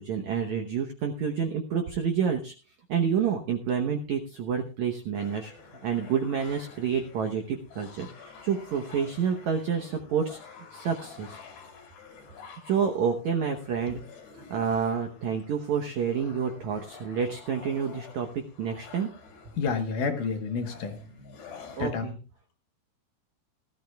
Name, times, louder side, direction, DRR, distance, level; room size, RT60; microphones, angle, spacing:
voice 1, 0.0-2.5 2.9-5.5 5.8-10.4 10.7-11.4 12.6-14.0 14.5-19.1 21.8-22.2, right 7 dB, 75° right, 4 dB, 1.7 m, -29 dB
sound 1, 5.1-21.9, left 5 dB, 85° left, 4.8 m, -49 dB
voice 2, 19.6-21.0 21.8-22.1, left 5 dB, 65° left, 4 dB, 2.4 m, -29 dB
19.0 x 13.5 x 2.3 m, 0.34 s
omnidirectional pair, 4.7 m